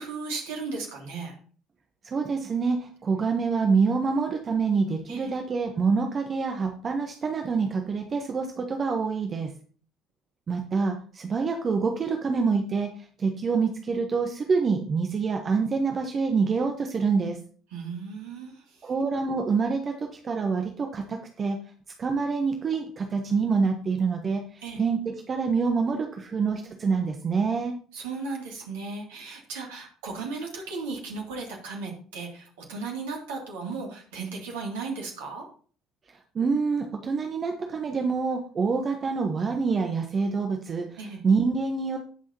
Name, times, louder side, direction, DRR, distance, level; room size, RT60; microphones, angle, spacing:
voice 1, 0.0-1.3 5.1-5.3 17.7-18.9 24.6-24.8 27.9-35.4 41.0-41.2, right 4 dB, 65° right, 0 dB, 2.8 m, -36 dB
voice 2, 2.0-9.5 10.5-17.4 18.8-21.6 22.0-27.7 36.3-41.0 41.2-42.0, right 5 dB, 35° right, 3 dB, 1.2 m, -26 dB
18.0 x 6.2 x 2.9 m, 0.42 s
figure-of-eight pair, 55°, 0 cm